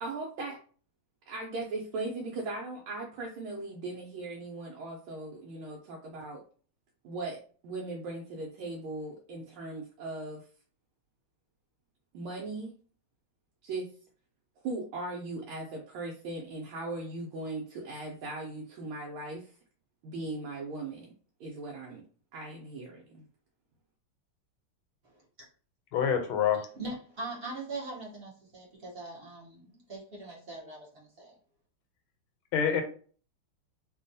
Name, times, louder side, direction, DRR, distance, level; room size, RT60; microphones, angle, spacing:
voice 1, 0.0-0.6 1.3-6.4 7.0-10.5 12.1-12.7 13.6-13.9 14.6-19.6 20.0-21.1 21.4-22.1 22.3-23.2, right 2 dB, 80° right, -1 dB, 1.4 m, -38 dB
voice 2, 25.9-26.7 32.5-32.8, left 8 dB, 80° left, 5 dB, 1.4 m, -26 dB
voice 3, 26.8-31.3, right 2 dB, 50° right, -4 dB, 0.7 m, -41 dB
3.4 x 2.2 x 2.6 m, 0.42 s
omnidirectional pair, 2.3 m